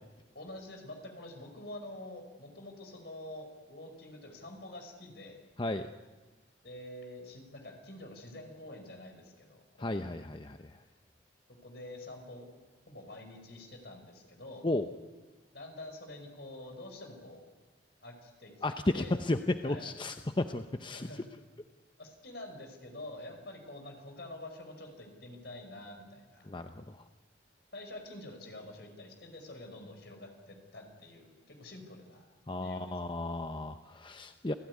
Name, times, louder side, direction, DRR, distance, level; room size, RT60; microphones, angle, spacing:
voice 1, 0.3-5.4 6.6-10.1 11.6-12.5 12.9-14.7 15.5-17.5 18.0-18.5 18.9-19.1 19.6-19.9 20.9-21.2 22.0-26.5 27.7-32.2 32.6-32.9, left 1 dB, 65° left, 4 dB, 5.4 m, -47 dB
voice 2, 5.6-5.9 9.8-10.8 14.6-14.9 18.6-21.1 26.5-27.0 32.5-34.5, left 2 dB, 25° left, 8 dB, 0.8 m, -33 dB
28.5 x 16.0 x 9.6 m, 1.3 s
head